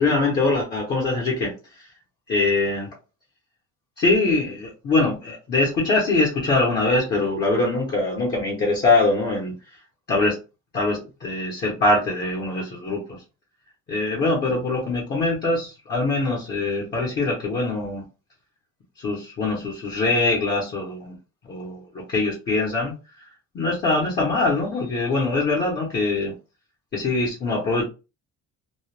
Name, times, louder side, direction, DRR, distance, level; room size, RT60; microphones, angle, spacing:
voice 1, 0.0-1.5 2.3-2.9 4.0-9.5 10.1-10.4 10.7-13.2 13.9-18.0 19.0-21.2 21.4-22.9 23.5-26.3 26.9-27.8, left 3 dB, 30° left, -3 dB, 0.7 m, -23 dB
2.2 x 2.1 x 3.1 m, 0.31 s
cardioid pair, 175°, 34 cm